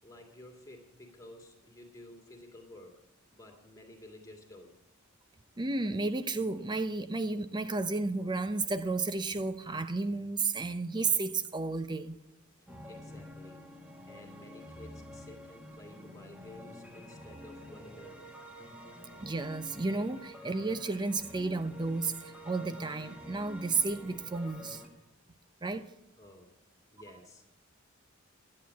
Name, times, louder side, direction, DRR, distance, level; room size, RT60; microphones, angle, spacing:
voice 1, 0.0-3.0 3.3-4.7 12.9-13.7 14.1-18.3 26.2-26.6 26.9-27.4, left 1 dB, 15° left, 2 dB, 2.2 m, -52 dB
voice 2, 5.6-12.2 19.2-24.8 25.6-25.9, right 3 dB, 20° right, 11 dB, 0.5 m, -32 dB
sound 1, 12.7-24.9, left 1 dB, 5° right, 1.6 m, -48 dB
11.5 x 8.7 x 8.3 m, 0.91 s
head